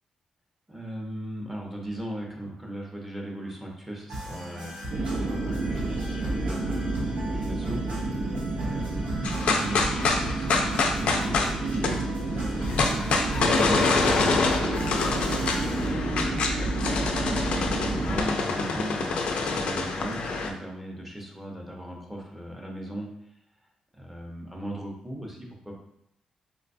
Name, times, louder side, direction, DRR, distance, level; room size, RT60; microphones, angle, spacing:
voice 1, 0.7-8.2 8.5-11.8 12.3-14.7 15.3-16.7 17.1-23.1 23.9-25.8, right 1 dB, 5° right, -1 dB, 0.6 m, -38 dB
sound 1, 4.1-15.9, right 1 dB, 90° right, 1.1 m, -39 dB
sound 2, 4.9-18.2, right 2 dB, 60° right, 0.5 m, -30 dB
sound 3, 9.2-20.5, left 4 dB, 70° left, 0.4 m, -26 dB
4.0 x 2.2 x 2.6 m, 0.75 s
cardioid pair, 110°, 2 cm